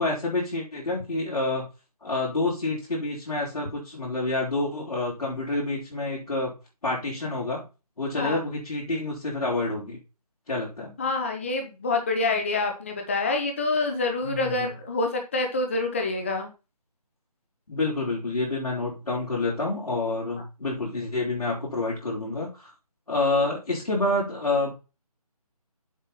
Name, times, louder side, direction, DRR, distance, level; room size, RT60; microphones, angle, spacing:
voice 1, 0.0-1.6 2.0-6.6 6.8-7.6 8.0-10.0 10.5-10.9 14.2-14.7 17.7-22.7 23.1-24.7, left 2 dB, 65° left, -5 dB, 4.5 m, -28 dB
voice 2, 11.0-16.5, left 3 dB, 20° left, 4 dB, 1.0 m, -27 dB
7.6 x 5.7 x 5.8 m, 0.31 s
figure-of-eight pair, 170°, 20 cm